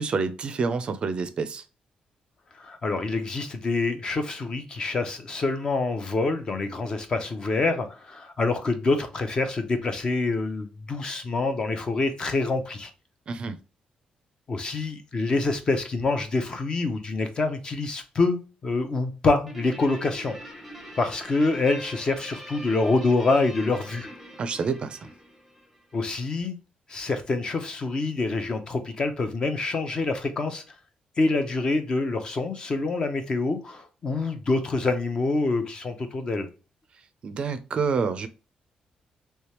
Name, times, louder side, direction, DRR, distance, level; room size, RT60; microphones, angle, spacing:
voice 1, 0.0-1.6 13.3-13.6 24.4-25.1 37.2-38.3, right 5 dB, 40° right, 0.4 m, -28 dB
voice 2, 2.6-12.9 14.5-20.3 21.0-24.1 25.9-26.6 26.9-30.6 31.2-36.5, left 3 dB, 35° left, 0.6 m, -26 dB
Guitar, 19.5-26.1, equal, ahead, 0.8 m, -43 dB
3.3 x 3.2 x 2.8 m
cardioid pair, 155°, 3 cm